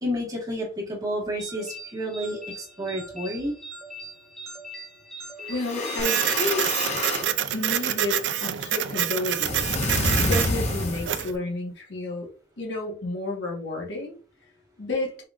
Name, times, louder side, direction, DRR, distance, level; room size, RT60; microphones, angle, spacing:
voice 1, 0.0-3.6, equal, 20° right, -2 dB, 1.5 m, -30 dB
sound 1, 1.4-7.2, right 1 dB, 5° left, 1.0 m, -42 dB
voice 2, 5.5-6.7 7.5-9.8 10.2-12.3 12.6-14.2 14.8-15.1, left 2 dB, 85° left, 0 dB, 1.3 m, -31 dB
sound 2, 5.5-7.3 9.4-11.3, left 2 dB, 40° left, 1.0 m, -28 dB
Printer, 6.0-11.3, right 10 dB, 85° right, 0.4 m, -27 dB
4.6 x 3.4 x 2.4 m, 0.38 s
head